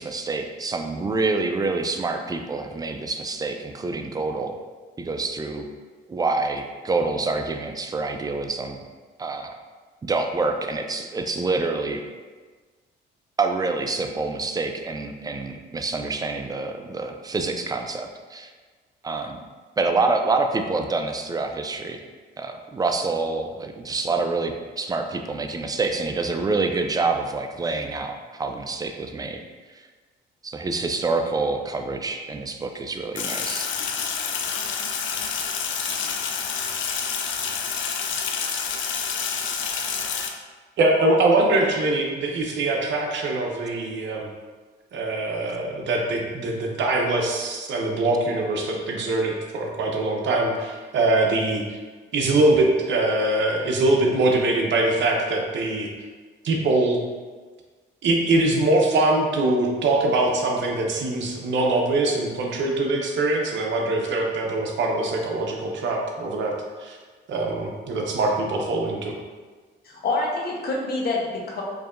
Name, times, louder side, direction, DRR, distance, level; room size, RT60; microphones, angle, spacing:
voice 1, 0.0-4.5 5.0-5.7 6.1-8.8 9.2-9.5 10.0-12.0 13.4-18.5 19.0-19.4 19.8-22.0 22.4-29.4 30.4-33.7, right 3 dB, 20° right, 5 dB, 0.4 m, -27 dB
Sink (filling or washing), 33.2-40.3, left 6 dB, 75° left, 0.4 m, -28 dB
voice 2, 40.8-44.3 44.9-51.6 52.1-55.9 56.4-57.0 58.0-66.5 66.8-67.0 67.3-69.1, right 2 dB, 70° right, 0 dB, 0.7 m, -23 dB
voice 3, 69.8-71.6, left 2 dB, 50° left, -2 dB, 0.9 m, -26 dB
4.7 x 2.7 x 2.5 m, 1.4 s
cardioid pair, 90°, 20 cm